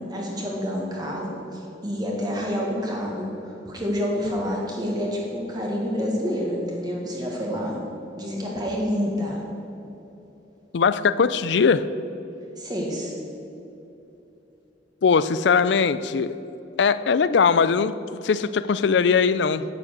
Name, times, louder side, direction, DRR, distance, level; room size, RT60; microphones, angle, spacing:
voice 1, 0.0-7.8 8.1-9.4 12.6-13.1, equal, 20° right, -2 dB, 1.6 m, -28 dB
voice 2, 10.7-11.9 15.0-16.3 16.8-17.9 18.2-19.7, left 5 dB, 75° left, 15 dB, 0.4 m, -20 dB
9.3 x 8.6 x 6.5 m, 2.9 s
head